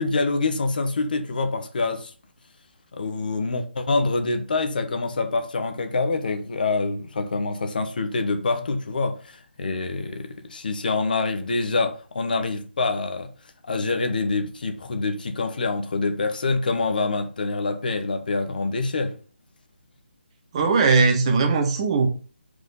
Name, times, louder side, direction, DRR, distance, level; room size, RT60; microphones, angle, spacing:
voice 1, 0.0-2.1 2.9-13.3 13.6-19.1, left 3 dB, 50° left, 1.2 m, -26 dB
voice 2, 20.5-22.1, right 4 dB, 30° right, 1.4 m, -19 dB
5.8 x 5.1 x 5.5 m
figure-of-eight pair, 150°, 6 cm